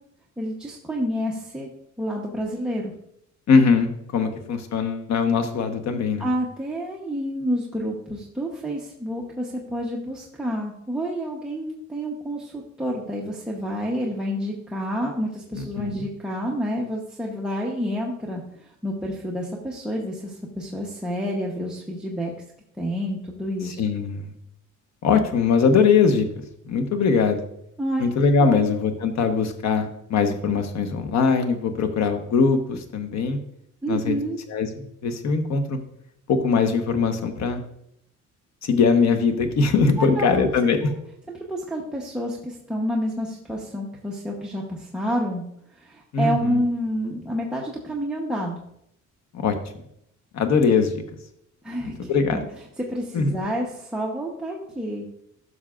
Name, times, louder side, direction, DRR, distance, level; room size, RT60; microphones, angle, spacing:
voice 1, 0.4-1.7 2.0-2.9 6.2-22.3 22.8-23.8 27.8-28.1 28.4-28.7 33.8-34.4 40.0-40.5 40.8-40.9 41.4-45.4 45.7-48.5 51.6-52.4 52.8-55.1, equal, 5° right, -3 dB, 0.9 m, -29 dB
voice 2, 3.5-6.3 15.5-16.0 23.8-24.3 25.0-26.2 26.6-27.4 28.0-33.4 33.9-34.2 34.5-35.8 36.3-37.6 38.6-40.8 46.1-46.6 49.3-49.5 50.3-50.9 51.8-52.4 53.1-53.4, left 5 dB, 60° left, 6 dB, 1.1 m, -21 dB
12.5 x 6.4 x 2.4 m, 0.73 s
cardioid pair, 140°, 31 cm